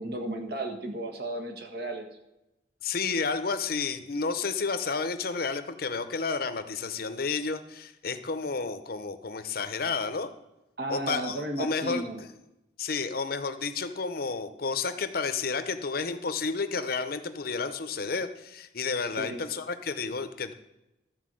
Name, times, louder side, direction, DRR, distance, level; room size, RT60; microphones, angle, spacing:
voice 1, 0.0-2.1 10.8-12.2 19.2-19.4, right 1 dB, 60° right, 3 dB, 1.6 m, -34 dB
voice 2, 2.8-10.3 10.9-12.0 12.8-20.5, left 4 dB, 55° left, 10 dB, 0.8 m, -31 dB
13.0 x 4.4 x 7.6 m, 0.92 s
head